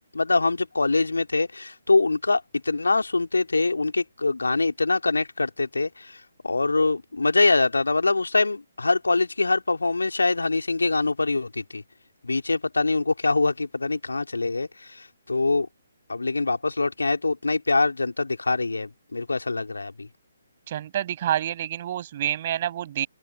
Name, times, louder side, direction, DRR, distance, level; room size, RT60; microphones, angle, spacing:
voice 1, 0.1-11.8 12.2-15.7 16.1-20.1, left 3 dB, 70° left, 3.4 m, -24 dB
voice 2, 20.7-23.1, right 11 dB, 35° right, 7.6 m, -28 dB
open air
figure-of-eight pair, 135°, 0 cm